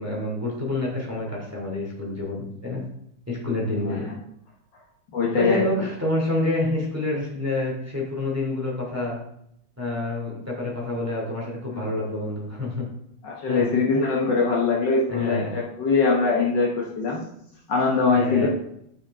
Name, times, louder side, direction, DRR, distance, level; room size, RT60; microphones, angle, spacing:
voice 1, 0.0-2.8 3.3-4.1 5.4-9.2 9.8-12.8 13.5-13.7 15.1-15.5 18.1-18.5, left 2 dB, 5° right, -4 dB, 2.6 m, -28 dB
voice 2, 5.1-5.6 11.7-11.8 13.2-17.2 17.7-18.5, left 4 dB, 60° left, -2 dB, 1.8 m, -22 dB
11.0 x 5.7 x 3.7 m, 0.73 s
omnidirectional pair, 2.3 m